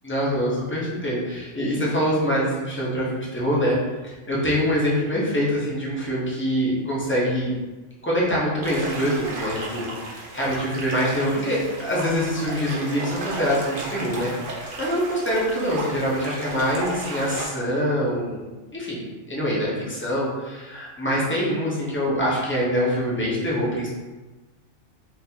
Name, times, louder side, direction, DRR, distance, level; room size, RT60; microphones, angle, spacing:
voice 1, 0.0-3.8 4.0-7.5 8.0-9.8 10.3-14.3 14.8-18.5 18.7-19.0 19.3-23.9, equal, 15° left, -6 dB, 0.6 m, -24 dB
sound 1, 8.6-17.4, right 2 dB, 55° right, 0.7 m, -34 dB
3.9 x 2.5 x 2.8 m, 1.2 s
omnidirectional pair, 1.2 m